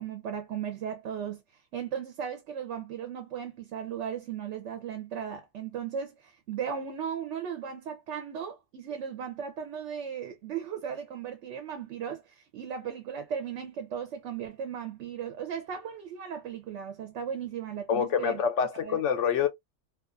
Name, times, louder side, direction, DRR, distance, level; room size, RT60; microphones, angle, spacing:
voice 1, 0.0-1.4 1.7-18.4 18.8-19.0, right 8 dB, 75° right, 0.9 m, -36 dB
voice 2, 17.9-19.5, left 7 dB, 85° left, 0.9 m, -26 dB
2.4 x 2.3 x 2.3 m
omnidirectional pair, 1.2 m